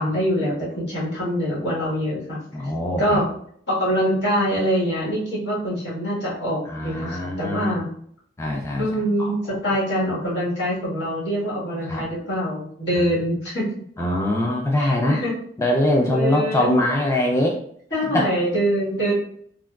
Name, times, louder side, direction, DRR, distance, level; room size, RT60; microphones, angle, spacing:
voice 1, 0.0-2.7 3.0-3.3 3.7-7.9 8.8-13.7 14.8-15.4 16.1-16.8 17.9-19.1, equal, 85° left, -7 dB, 1.5 m, -24 dB
voice 2, 2.5-3.2 6.7-7.8 8.4-8.9 9.2-9.6 11.9-12.1 14.0-15.2 15.6-17.6 18.1-18.3, left 1 dB, 15° left, -1 dB, 0.3 m, -22 dB
3.5 x 2.2 x 2.3 m, 0.63 s
head